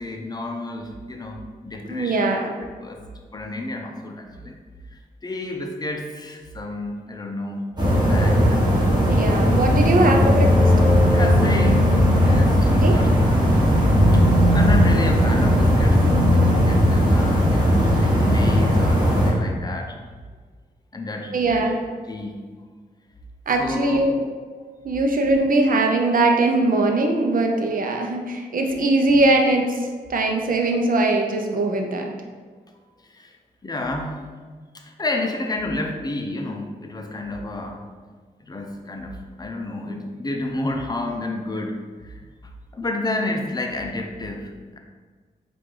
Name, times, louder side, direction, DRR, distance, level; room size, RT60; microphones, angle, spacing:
voice 1, 0.0-2.3 2.8-3.0 3.3-4.6 5.2-7.7 8.1-9.2 11.1-13.5 14.1-14.2 14.5-19.9 20.9-21.6 22.1-22.4 23.5-24.0 33.1-33.3 33.6-34.2 34.7-37.8 38.4-41.8 42.0-42.3 42.7-44.8, left 2 dB, 25° left, 2 dB, 0.6 m, -30 dB
voice 2, 1.9-2.5 9.1-10.5 12.8-13.0 21.3-21.8 23.5-24.2 24.8-29.8 30.1-32.1, right 2 dB, 60° right, 3 dB, 0.6 m, -20 dB
sound 1, 7.8-19.3, equal, 25° right, 1.4 m, -17 dB
4.6 x 2.5 x 3.8 m, 1.5 s
cardioid pair, 60°, 16 cm